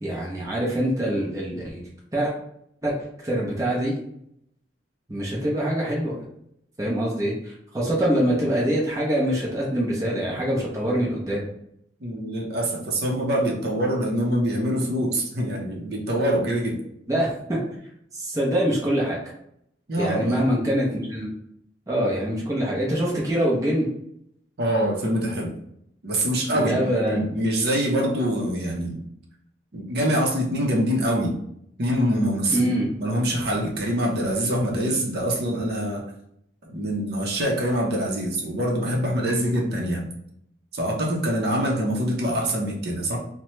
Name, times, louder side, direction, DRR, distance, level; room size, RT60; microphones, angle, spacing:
voice 1, 0.0-2.3 2.8-2.9 3.2-3.9 5.1-6.2 6.8-11.4 17.1-17.6 18.1-19.2 20.0-21.3 21.9-23.9 26.5-27.2 32.5-32.9, equal, 20° right, -5 dB, 0.6 m, -24 dB
voice 2, 12.0-16.8 19.9-20.4 24.6-25.5 26.0-29.0 29.7-31.3 31.8-36.1 36.6-40.0 40.7-43.2, equal, 60° right, -1 dB, 0.7 m, -24 dB
2.9 x 2.1 x 3.1 m, 0.74 s
head